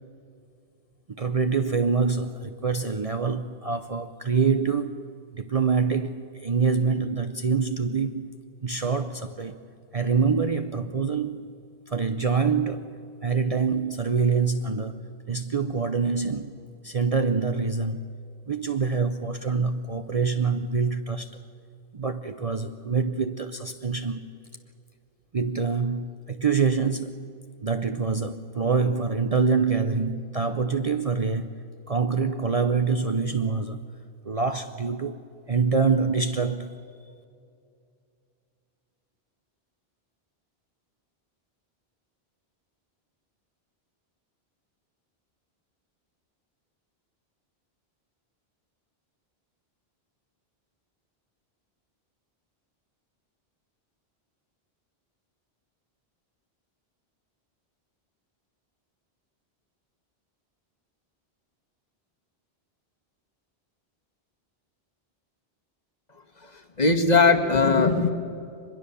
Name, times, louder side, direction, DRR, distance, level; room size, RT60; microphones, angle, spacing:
voice 1, 1.1-5.0 5.3-8.3 8.6-9.6 9.9-11.5 11.9-13.0 13.2-15.0 15.3-16.5 16.8-18.1 18.5-21.3 21.9-24.3 25.3-27.2 27.6-31.5 31.9-33.8 34.2-35.2 35.5-36.8, right 5 dB, 40° right, 0.7 m, -25 dB
voice 2, 66.4-68.1, left 4 dB, 40° left, 1.5 m, -20 dB
23.5 x 21.5 x 6.9 m
omnidirectional pair, 1.1 m